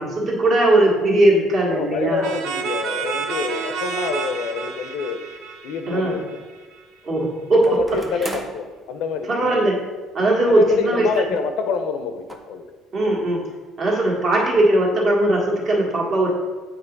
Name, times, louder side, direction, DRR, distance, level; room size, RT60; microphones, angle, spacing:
voice 1, 0.0-2.2 5.9-6.1 7.0-7.8 8.2-8.3 9.3-9.8 10.1-11.2 12.9-13.5 13.8-16.3, right 1 dB, 40° right, -2 dB, 1.7 m, -19 dB
voice 2, 1.7-5.2 5.6-6.3 7.5-9.3 10.5-12.8, left 5 dB, 70° left, 8 dB, 0.6 m, -27 dB
sound 1, 2.2-6.8, right 5 dB, 70° right, 0.6 m, -29 dB
sound 2, 5.3-5.4 7.6-8.7 9.6-9.7 9.9-10.0 11.1-11.5 11.7-11.9 12.3-12.4, right 1 dB, 10° right, 0.6 m, -36 dB
8.3 x 3.0 x 5.2 m, 1.4 s
cardioid pair, 150°, 0 cm